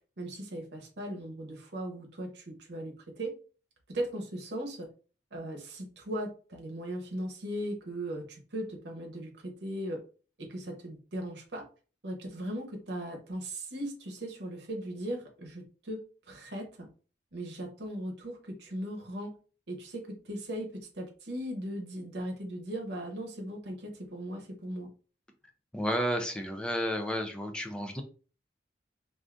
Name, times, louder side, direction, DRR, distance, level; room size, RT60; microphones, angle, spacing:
voice 1, 0.2-3.3 3.9-4.9 5.3-10.0 10.4-11.6 12.0-16.0 16.3-16.9 17.3-19.3 19.7-20.7 20.9-24.9, right 1 dB, 70° right, 2 dB, 0.9 m, -38 dB
voice 2, 25.7-28.0, equal, 5° left, 4 dB, 0.4 m, -31 dB
2.6 x 2.4 x 3.4 m, 0.37 s
head